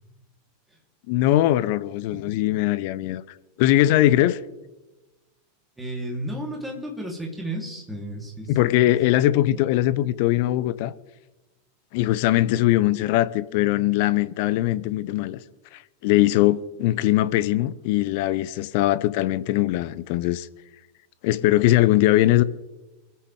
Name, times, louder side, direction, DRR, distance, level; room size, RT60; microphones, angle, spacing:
voice 1, 1.1-3.2 3.6-4.4 8.5-10.9 11.9-15.4 15.7-20.5 21.2-22.4, left 15 dB, 50° left, 0.7 m, -21 dB
voice 2, 5.8-9.0, right 1 dB, 5° right, 3.5 m, -33 dB
25.5 x 8.5 x 3.6 m
figure-of-eight pair, 85°, 0 cm